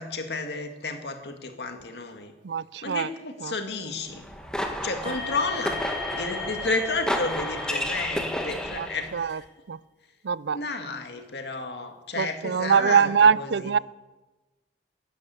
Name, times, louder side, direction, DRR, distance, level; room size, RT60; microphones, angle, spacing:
voice 1, 0.0-2.3 2.8-4.3 4.8-5.8 6.2-9.5 10.5-13.7, left 3 dB, 75° left, 5 dB, 2.1 m, -32 dB
voice 2, 2.4-3.1 3.4-3.5 8.8-8.9 9.1-9.4 9.7-9.8 10.2-10.6 12.2-13.8, right 7 dB, 80° right, 20 dB, 0.5 m, -22 dB
sound 1, 4.1-9.2, equal, 5° left, 1.5 m, -32 dB
sound 2, 5.0-9.3, left 4 dB, 35° right, 4.1 m, -37 dB
14.5 x 11.5 x 8.4 m, 1.1 s
head